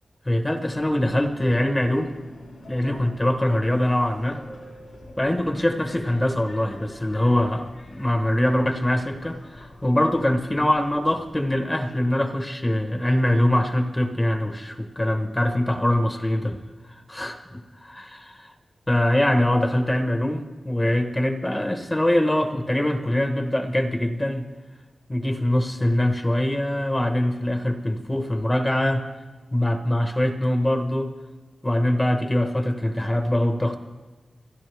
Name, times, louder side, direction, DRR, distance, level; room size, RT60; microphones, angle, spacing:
voice 1, 0.2-2.1 2.7-4.4 5.2-16.6 17.1-17.3 18.0-18.5 18.9-24.5 25.1-29.0 29.5-31.1 31.6-33.8, left 1 dB, 20° left, 6 dB, 1.2 m, -23 dB
Subway metro underground, 0.7-11.5, left 1 dB, 75° left, 4.9 m, -46 dB
28.5 x 10.5 x 3.5 m, 1.3 s
wide cardioid pair, 90°, 0 cm